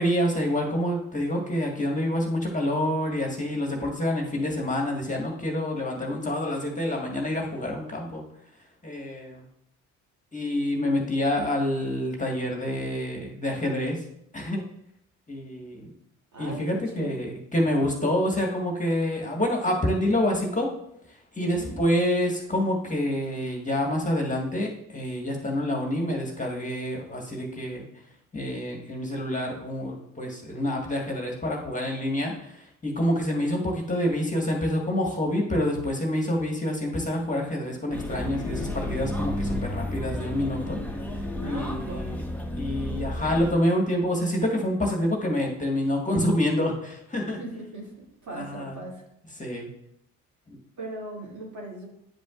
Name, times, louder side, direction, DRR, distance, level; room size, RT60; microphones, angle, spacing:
voice 1, 0.0-8.2 8.8-9.5 10.3-14.0 14.3-14.7 15.3-15.9 16.4-20.7 21.1-27.9 28.3-42.3 42.6-47.4 48.3-48.8 49.4-49.7 50.5-50.6, left 1 dB, 20° left, 0 dB, 1.6 m, -27 dB
voice 2, 16.3-17.4 21.4-21.8 41.4-42.2 47.4-49.1 50.8-51.9, right 2 dB, 50° right, -3 dB, 2.5 m, -38 dB
sound 1, 37.9-43.5, left 1 dB, 5° left, 1.2 m, -32 dB
9.7 x 5.1 x 2.5 m, 0.76 s
hypercardioid pair, 50°, 37 cm